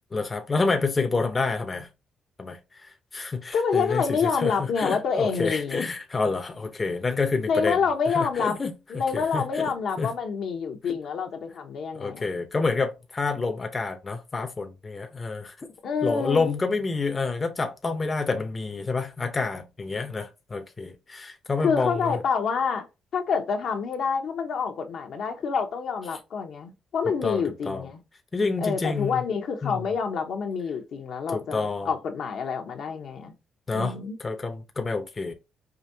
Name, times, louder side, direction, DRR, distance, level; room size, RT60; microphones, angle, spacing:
voice 1, 0.1-1.9 2.4-2.6 3.1-7.8 8.1-8.7 9.1-9.7 10.0-10.1 12.0-15.5 16.0-22.1 27.2-27.9 28.3-29.2 29.6-29.8 31.3-31.9 33.7-33.9 34.2-35.3, left 4 dB, 30° left, 0.7 m, -28 dB
voice 2, 3.5-5.9 7.5-8.6 8.9-12.3 15.8-16.5 21.6-22.9 23.1-28.0 28.6-33.3 33.7-34.2, left 5 dB, 70° left, 0.9 m, -27 dB
5.0 x 2.6 x 2.7 m
cardioid pair, 90°, 0 cm